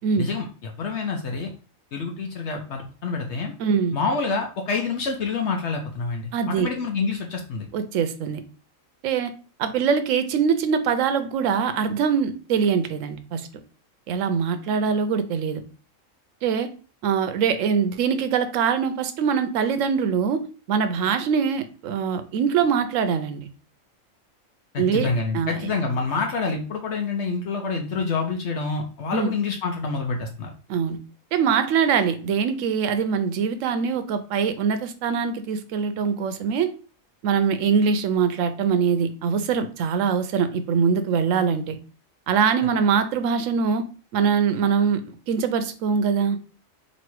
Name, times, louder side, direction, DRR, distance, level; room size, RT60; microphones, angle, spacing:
voice 1, 0.2-1.5 1.9-3.5 3.9-7.7 24.7-30.5, left 4 dB, 65° left, 2 dB, 0.9 m, -27 dB
voice 2, 3.6-4.0 6.3-6.7 7.7-8.4 9.0-9.3 9.6-13.5 14.1-15.6 16.4-16.7 17.0-20.4 20.7-23.5 24.8-25.1 25.3-25.7 29.1-29.3 30.7-31.0 31.3-36.7 37.2-41.8 42.3-43.8 44.1-46.4, right 6 dB, 75° right, 9 dB, 0.9 m, -23 dB
3.1 x 2.7 x 4.4 m, 0.37 s
omnidirectional pair, 1.4 m